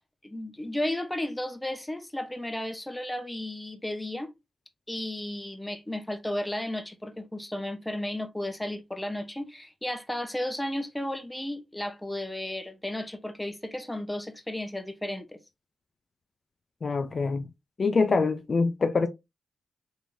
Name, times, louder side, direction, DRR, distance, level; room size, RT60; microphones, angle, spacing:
voice 1, 0.2-4.3 4.9-15.3, left 1 dB, 10° left, 0.7 m, -34 dB
voice 2, 16.8-17.5 17.8-19.1, left 4 dB, 50° left, 0.4 m, -25 dB
3.6 x 3.1 x 2.5 m
cardioid pair, 65°, 0 cm